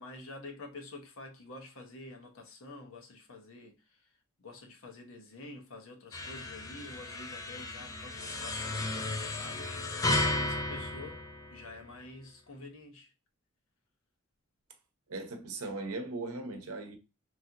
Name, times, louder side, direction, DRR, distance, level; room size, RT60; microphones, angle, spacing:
voice 1, 0.0-4.1 4.4-11.2 11.5-13.1, left 2 dB, 65° left, 0.8 m, -48 dB
sound 1, 6.1-11.9, left 2 dB, 15° left, 0.3 m, -34 dB
voice 2, 15.1-17.0, right 3 dB, 80° right, 0.7 m, -38 dB
3.0 x 2.8 x 2.4 m
head